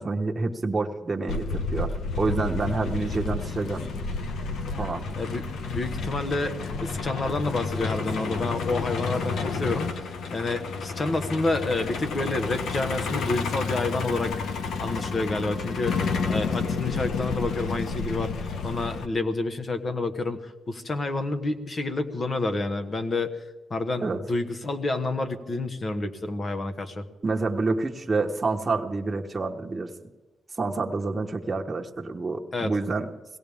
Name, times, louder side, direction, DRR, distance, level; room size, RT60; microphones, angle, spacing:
voice 1, 0.0-3.9 4.8-5.0 24.0-24.2 27.2-29.9 30.6-33.1, right 3 dB, 30° right, 1 dB, 1.2 m, -28 dB
Truck, 1.3-19.1, left 4 dB, 80° left, 1.0 m, -30 dB
voice 2, 5.2-14.3 14.8-23.4 23.7-27.1 32.5-32.7, left 2 dB, 40° left, 8 dB, 1.4 m, -29 dB
22.0 x 17.0 x 3.6 m, 1.2 s
cardioid pair, 85°, 0 cm